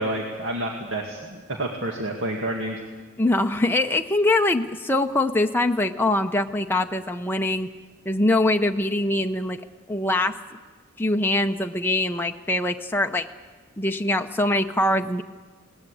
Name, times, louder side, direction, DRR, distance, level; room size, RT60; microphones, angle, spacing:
voice 1, 0.0-2.8, right 1 dB, 65° right, 0 dB, 2.2 m, -29 dB
voice 2, 3.2-7.7 8.1-9.6 9.9-10.4 11.0-13.3 13.8-15.2, left 1 dB, 10° left, 4 dB, 0.6 m, -23 dB
21.5 x 19.0 x 8.5 m, 1.4 s
head